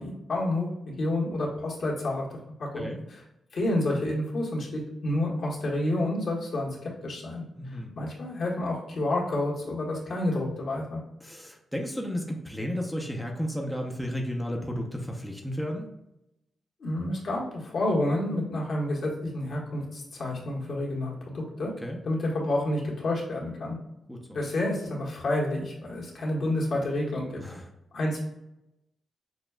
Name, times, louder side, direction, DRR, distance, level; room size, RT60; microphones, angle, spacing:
voice 1, 0.0-2.3 2.6-3.2 3.5-7.4 7.7-11.0 16.8-21.7 22.0-23.8 24.3-27.4 27.9-28.2, left 1 dB, 65° left, -3 dB, 1.4 m, -29 dB
voice 2, 7.6-7.9 11.2-15.9 21.8-22.0 24.1-24.4 27.4-27.7, equal, ahead, 0 dB, 0.6 m, -33 dB
6.2 x 2.2 x 2.2 m, 0.88 s
cardioid pair, 70°, 0 cm